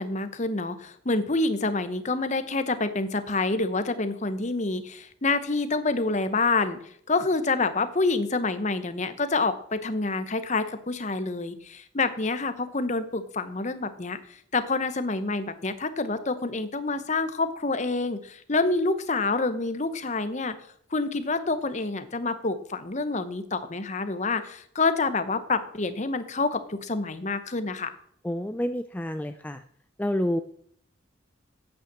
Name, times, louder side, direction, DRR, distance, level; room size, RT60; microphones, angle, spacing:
voice 1, 0.0-20.6 20.9-28.0, left 3 dB, 35° left, 10 dB, 1.0 m, -27 dB
voice 2, 28.2-29.6 30.0-30.4, left 1 dB, 10° left, 9 dB, 0.4 m, -28 dB
9.0 x 8.8 x 7.5 m, 0.64 s
head